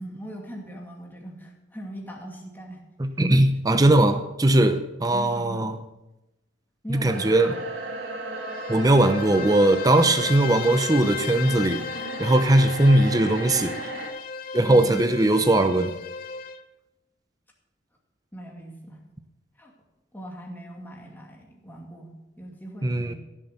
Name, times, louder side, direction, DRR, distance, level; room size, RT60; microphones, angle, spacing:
voice 1, 0.0-2.8 5.1-5.7 6.8-7.6 14.6-15.0 18.3-19.0 19.6-19.7 20.1-23.2, equal, 10° left, -1 dB, 2.3 m, -40 dB
voice 2, 3.0-5.8 6.9-7.5 8.7-11.8 12.2-13.7 14.5-15.9 22.8-23.1, right 1 dB, 20° right, 8 dB, 0.7 m, -20 dB
sound 1, 7.1-14.1, right 2 dB, 90° right, 2.8 m, -36 dB
Bowed string instrument, 8.3-16.6, left 6 dB, 50° left, 0.7 m, -35 dB
15.0 x 7.4 x 6.7 m, 0.97 s
head